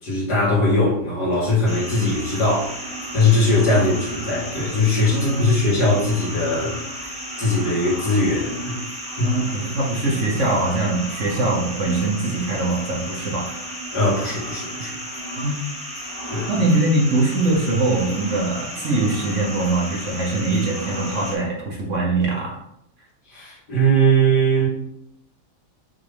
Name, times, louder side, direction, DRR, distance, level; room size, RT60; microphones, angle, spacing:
voice 1, 0.0-6.8 7.4-8.8 9.2-9.4 13.9-15.0 16.3-16.5 23.3-24.7, left 1 dB, 70° left, -7 dB, 2.3 m, -20 dB
sound 1, 1.7-21.4, equal, 5° right, 1.0 m, -33 dB
voice 2, 3.7-4.1 5.1-5.7 9.2-13.5 15.4-15.6 16.5-22.6, right 2 dB, 55° right, -2 dB, 1.0 m, -22 dB
6.0 x 2.6 x 3.4 m, 0.79 s
omnidirectional pair, 1.8 m